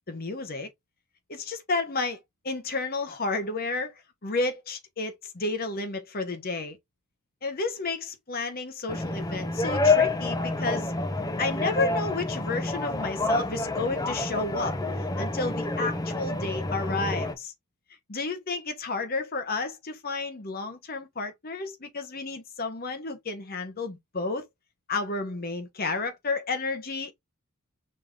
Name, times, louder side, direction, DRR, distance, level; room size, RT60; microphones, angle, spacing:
voice 1, 0.1-0.7 1.3-3.9 4.2-6.8 7.4-10.9 11.4-14.8 15.2-17.5 18.1-24.5 24.9-27.1, left 3 dB, 45° left, 0.9 m, -31 dB
sound 1, 8.9-17.3, left 2 dB, 15° left, 0.6 m, -28 dB
5.4 x 3.5 x 2.5 m
head